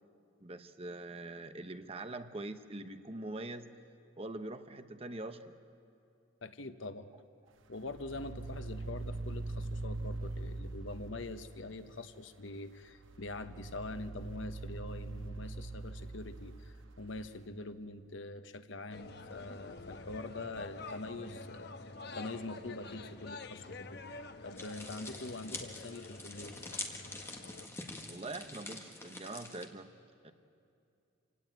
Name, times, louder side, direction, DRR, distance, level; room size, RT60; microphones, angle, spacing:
voice 1, 0.4-3.7 4.2-5.6 28.1-29.9 30.2-30.3, right 2 dB, 30° right, 8 dB, 0.9 m, -43 dB
voice 2, 6.4-7.1 7.7-24.0 24.4-26.5, left 2 dB, 75° left, 9 dB, 1.1 m, -44 dB
sound 1, 7.8-11.5 12.8-17.2, right 2 dB, 80° right, 1.2 m, -42 dB
sound 2, 18.9-27.7, left 3 dB, 55° left, 1.0 m, -48 dB
sound 3, 24.6-29.7, left 2 dB, 15° left, 1.6 m, -45 dB
27.0 x 17.0 x 9.3 m, 2.6 s
head